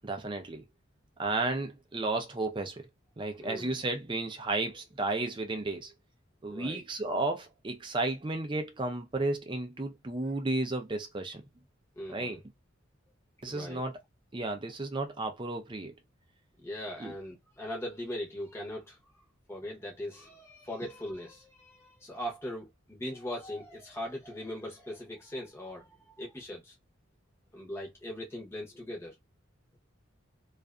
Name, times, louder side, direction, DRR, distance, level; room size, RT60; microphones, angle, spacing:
voice 1, 0.0-0.6 1.2-2.9 3.2-5.9 6.4-11.4 12.1-12.4 13.4-14.0 14.3-15.9 17.0-17.1, right 2 dB, 25° right, 0.5 m, -33 dB
voice 2, 3.4-3.7 6.5-6.8 12.0-12.4 13.5-13.8 16.6-19.0 19.5-26.7 27.5-29.1, left 1 dB, 15° left, 0.8 m, -40 dB
2.5 x 2.4 x 2.2 m
head